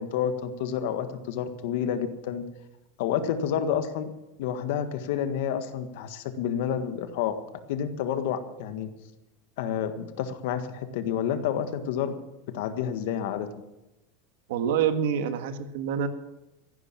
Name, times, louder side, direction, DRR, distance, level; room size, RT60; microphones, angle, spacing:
voice 1, 0.0-2.4 3.0-4.1 4.4-7.4 7.7-8.9 9.6-12.1 12.5-13.5, left 8 dB, 60° left, 9 dB, 1.6 m, -29 dB
voice 2, 14.5-16.1, right 8 dB, 70° right, 9 dB, 1.7 m, -26 dB
15.0 x 11.5 x 7.4 m, 0.98 s
supercardioid pair, 170°, 0 cm